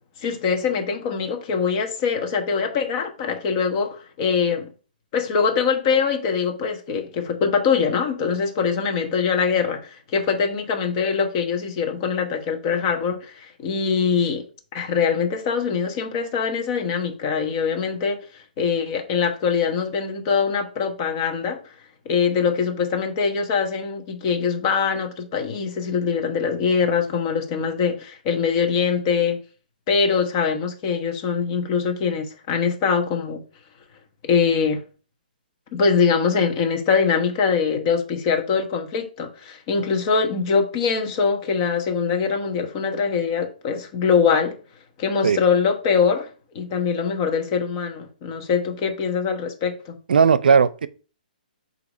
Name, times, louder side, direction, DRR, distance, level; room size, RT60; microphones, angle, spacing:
voice 1, 0.2-4.7 5.1-14.4 14.7-21.6 22.0-29.4 29.9-33.4 34.2-34.8 35.7-44.5 45.0-46.3 46.5-49.9, left 6 dB, 30° left, 1.1 m, -23 dB
voice 2, 50.1-50.9, right 6 dB, 75° right, 0.5 m, -16 dB
7.9 x 2.9 x 5.4 m
hypercardioid pair, 155°, 5 cm